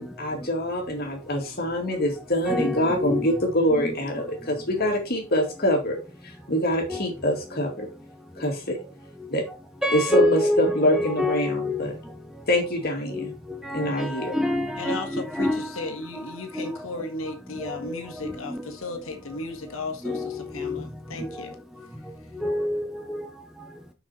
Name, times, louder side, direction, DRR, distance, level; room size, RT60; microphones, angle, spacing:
voice 1, 0.0-6.0 6.2-7.9 8.4-8.8 9.3-9.4 9.9-11.9 12.5-13.3 13.7-14.4, equal, 45° left, 2.3 m, -25 dB
voice 2, 2.5-3.3 3.7-4.0 4.8-5.0 6.9-7.0 9.8-11.9 13.1-13.3 13.6-15.7 16.6-16.7 17.9-18.0 18.2-18.6 20.0-20.8 22.4-23.2, left 1 dB, ahead, 0.8 m, -27 dB
voice 3, 14.8-21.5, left 2 dB, 65° left, 1.7 m, -35 dB
6.4 x 5.9 x 4.3 m
head